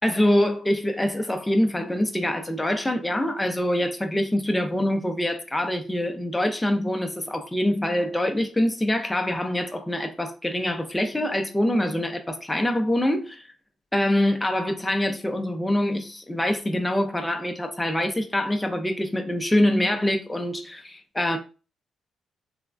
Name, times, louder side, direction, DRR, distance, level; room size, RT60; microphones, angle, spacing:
voice 1, 0.0-13.4 13.9-21.4, left 1 dB, 10° left, 0.4 m, -25 dB
3.2 x 2.0 x 2.4 m
cardioid pair, 90°, 0 cm